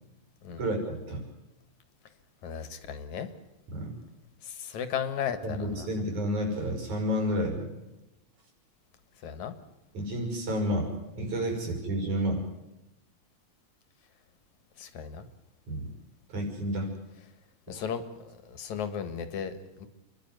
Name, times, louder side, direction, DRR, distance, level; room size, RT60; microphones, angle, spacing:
voice 1, 0.5-1.2 3.7-3.9 5.4-7.7 9.9-12.4 15.7-15.9 16.3-16.9 17.7-17.8, equal, 90° right, 2 dB, 7.1 m, -30 dB
voice 2, 2.4-3.3 4.4-5.9 9.2-9.5 14.8-15.3 17.7-19.9, left 7 dB, 80° left, 11 dB, 3.1 m, -35 dB
29.0 x 11.5 x 9.5 m, 0.98 s
omnidirectional pair, 3.3 m